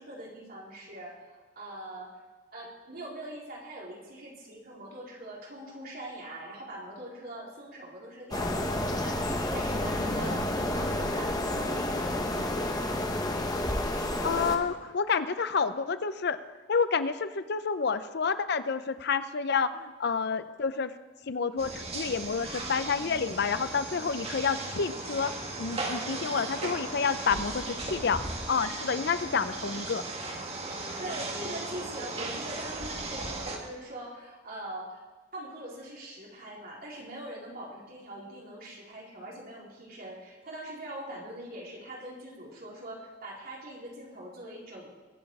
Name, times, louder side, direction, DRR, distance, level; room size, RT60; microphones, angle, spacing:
voice 1, 0.0-2.2 2.5-13.2 31.0-35.0 35.3-44.9, right 1 dB, 55° right, -4 dB, 4.1 m, -42 dB
sound 1, 8.3-14.6, left 1 dB, 20° left, 1.3 m, -30 dB
voice 2, 14.2-16.4 16.7-20.9 21.3-25.3 25.6-28.2 28.5-30.0, left 5 dB, 60° left, 12 dB, 0.6 m, -29 dB
sound 2, 21.6-33.6, right 2 dB, 35° right, 2.0 m, -37 dB
21.5 x 8.6 x 4.8 m, 1.3 s
head